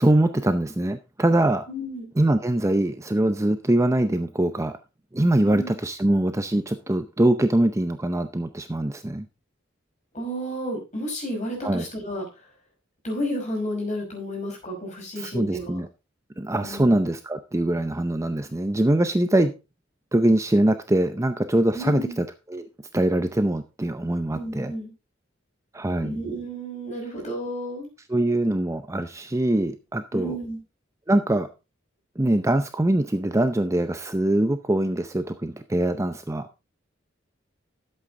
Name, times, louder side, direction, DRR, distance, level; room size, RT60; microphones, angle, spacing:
voice 1, 0.0-1.6 2.2-4.7 5.1-9.3 11.6-11.9 15.2-15.9 16.4-19.5 20.1-22.7 22.9-24.7 25.7-26.2 28.1-30.4 31.1-31.5 32.2-36.5, right 1 dB, 15° right, 9 dB, 0.6 m, -23 dB
voice 2, 1.7-2.1 5.5-5.7 10.1-12.2 13.0-15.8 16.6-16.9 21.7-22.2 24.3-24.9 26.0-27.9 30.1-30.6, equal, 40° left, 0 dB, 5.6 m, -31 dB
11.5 x 7.9 x 3.7 m, 0.28 s
head